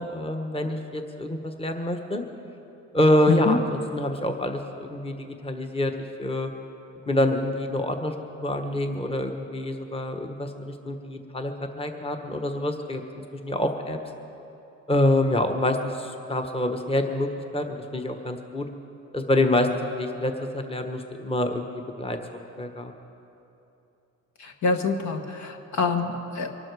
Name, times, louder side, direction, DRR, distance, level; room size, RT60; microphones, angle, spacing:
voice 1, 0.0-2.2 2.9-5.9 6.2-6.5 7.1-8.1 8.4-13.0 13.4-14.0 14.9-17.3 17.5-18.7 19.1-22.2 22.6-22.9, left 1 dB, 20° left, 5 dB, 1.2 m, -26 dB
voice 2, 3.3-3.6 24.4-26.6, left 4 dB, 65° left, 5 dB, 1.4 m, -26 dB
23.5 x 12.0 x 4.8 m, 2.9 s
cardioid pair, 90°, 30 cm